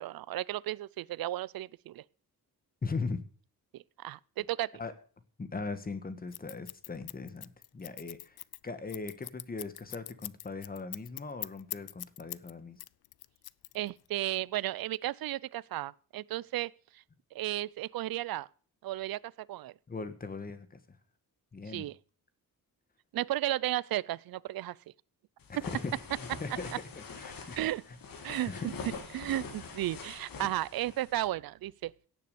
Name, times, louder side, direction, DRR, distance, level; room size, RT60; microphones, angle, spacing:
voice 1, 0.0-2.0 3.7-4.7 13.7-17.0 17.3-18.5 18.8-19.7 21.7-22.0 23.1-24.8 27.6-27.8 28.2-31.9, right 14 dB, 70° right, 0.5 m, -34 dB
voice 2, 2.8-3.2 4.8-4.9 5.4-8.4 8.6-12.8 19.9-20.8 21.5-21.8 25.5-25.9 26.2-26.5 27.0-27.6 28.3-28.7, left 4 dB, 25° left, 1.3 m, -39 dB
Scissors, 6.3-12.5 12.8-14.1, left 15 dB, 80° left, 0.5 m, -42 dB
sound 1, 25.4-31.3, left 5 dB, 65° left, 1.9 m, -44 dB
17.0 x 6.8 x 6.9 m
wide cardioid pair, 165°, 37 cm